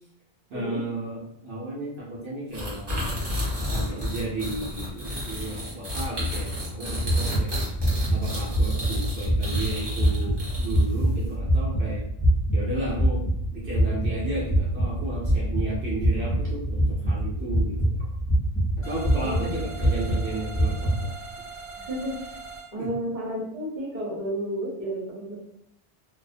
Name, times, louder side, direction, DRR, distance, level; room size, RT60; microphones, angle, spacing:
voice 1, 0.5-3.3 3.6-7.5 8.1-12.0 12.5-13.2 13.5-18.0 18.8-21.1 22.8-22.9, right 1 dB, 80° right, -7 dB, 0.9 m, -34 dB
sound 1, 2.5-11.0, left 1 dB, 25° right, 0.7 m, -31 dB
sound 2, 7.0-21.0, right 1 dB, 15° left, 0.6 m, -25 dB
sound 3, 18.8-22.7, right 4 dB, 45° left, 1.1 m, -41 dB
voice 2, 21.8-22.4 22.7-25.4, right 1 dB, 50° right, -7 dB, 1.2 m, -32 dB
2.4 x 2.0 x 2.5 m, 0.73 s
omnidirectional pair, 1.0 m